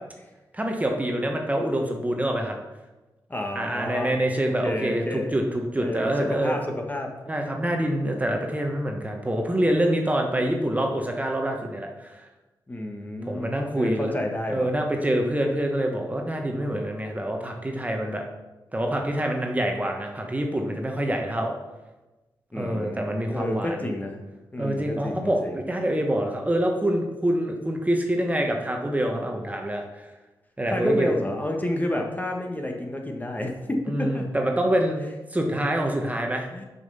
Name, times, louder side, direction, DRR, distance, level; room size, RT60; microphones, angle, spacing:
voice 1, 0.5-2.6 3.5-6.6 7.3-12.3 13.2-14.1 14.5-18.2 18.7-21.5 22.5-23.9 24.6-30.1 30.6-31.1 33.9-36.5, right 1 dB, 20° right, 2 dB, 1.2 m, -26 dB
voice 2, 3.3-4.1 4.6-5.4 5.7-7.1 12.7-13.5 13.7-14.7 22.5-24.1 24.5-25.5 30.7-34.2 36.5-36.6, left 1 dB, 20° left, 2 dB, 1.4 m, -30 dB
6.2 x 5.6 x 5.5 m, 1.1 s
cardioid pair, 55°, 8 cm